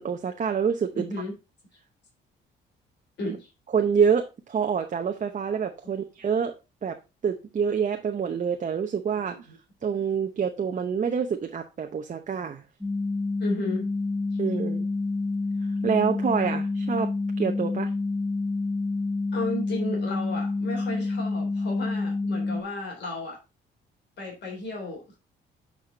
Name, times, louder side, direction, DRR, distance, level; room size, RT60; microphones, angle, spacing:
voice 1, 0.0-1.1 3.7-6.6 6.8-7.0 7.2-9.4 9.8-12.6 14.4-14.9 15.8-17.9, right 7 dB, 40° right, 5 dB, 0.8 m, -26 dB
voice 2, 0.9-1.3 3.2-3.5 9.3-9.5 13.4-13.9 19.3-23.4 24.2-25.1, left 1 dB, 60° left, 0 dB, 3.2 m, -34 dB
sound 1, 12.8-22.6, left 3 dB, 5° left, 1.0 m, -28 dB
8.0 x 5.0 x 3.7 m, 0.27 s
cardioid pair, 90°, 20 cm